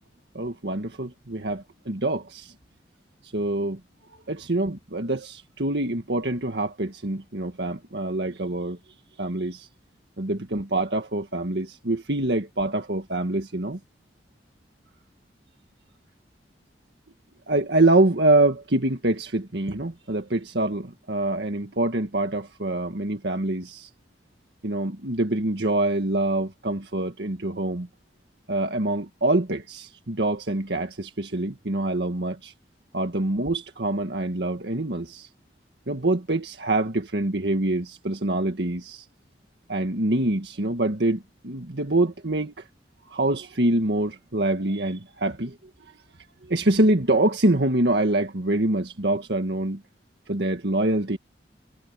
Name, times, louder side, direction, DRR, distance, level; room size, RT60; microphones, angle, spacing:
voice 1, 0.4-2.5 3.2-3.8 4.3-8.8 9.2-9.7 10.2-13.8 17.5-23.9 24.6-27.9 28.5-32.5 32.9-35.3 35.9-39.1 39.7-42.5 43.1-45.6 46.5-49.8 50.3-51.2, right 2 dB, 75° right, 1.8 m, -25 dB
head